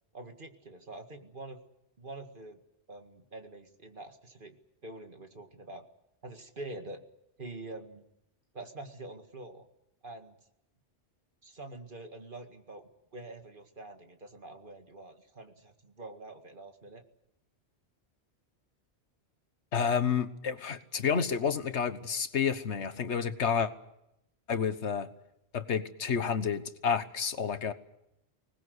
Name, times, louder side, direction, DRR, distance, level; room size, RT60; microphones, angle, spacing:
voice 1, 0.1-1.6 2.0-2.6 2.9-4.6 4.8-5.8 6.2-7.0 7.4-8.0 8.5-9.7 10.0-10.4 11.4-17.0, right 2 dB, 50° right, 5 dB, 2.2 m, -45 dB
voice 2, 19.7-23.7 24.5-25.1 25.5-27.7, left 6 dB, 90° left, 11 dB, 1.5 m, -30 dB
25.5 x 19.5 x 8.0 m, 0.83 s
omnidirectional pair, 1.1 m